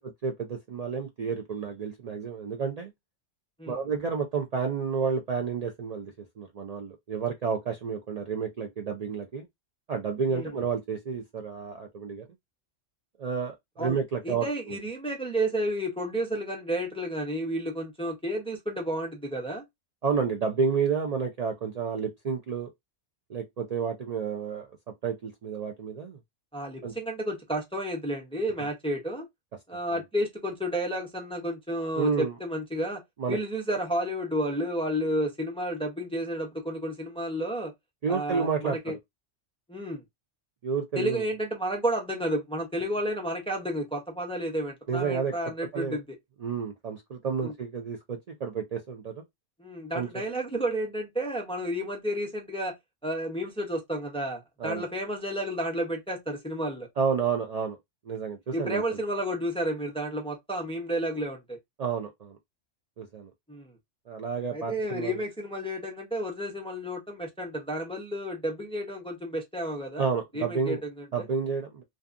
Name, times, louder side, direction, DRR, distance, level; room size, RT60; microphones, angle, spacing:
voice 1, 0.0-2.9 3.7-9.5 9.9-12.3 13.2-14.8 20.0-22.7 23.3-24.7 25.0-26.2 26.8-26.9 28.6-28.7 32.0-32.3 33.2-33.4 38.0-38.8 40.6-41.2 44.9-45.3 45.7-46.0 46.4-49.2 49.9-50.2 54.6-54.8 57.0-57.8 58.1-58.8 61.8-62.4 63.0-63.3 64.1-65.2 70.0-70.8 71.1-71.8, right 6 dB, 90° right, 0.3 m, -30 dB
voice 2, 14.2-19.6 26.5-29.3 29.7-33.0 33.3-37.7 38.1-38.9 39.7-40.0 41.0-46.0 47.4-47.5 49.6-52.7 53.0-56.9 58.5-61.6 63.5-63.7 64.5-70.1 70.3-71.3, equal, 10° left, 0.4 m, -31 dB
2.7 x 2.3 x 2.4 m
omnidirectional pair, 1.2 m